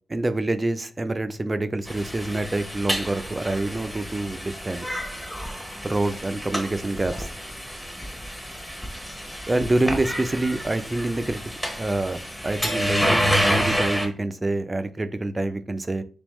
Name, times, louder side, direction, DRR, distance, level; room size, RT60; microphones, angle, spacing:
voice 1, 0.1-5.0 5.8-7.3 9.5-11.4 11.8-16.0, right 2 dB, 25° right, 0.4 m, -26 dB
sound 1, 1.9-14.1, equal, 5° left, 0.7 m, -29 dB
3.4 x 3.4 x 3.1 m
cardioid pair, 95°, 0 cm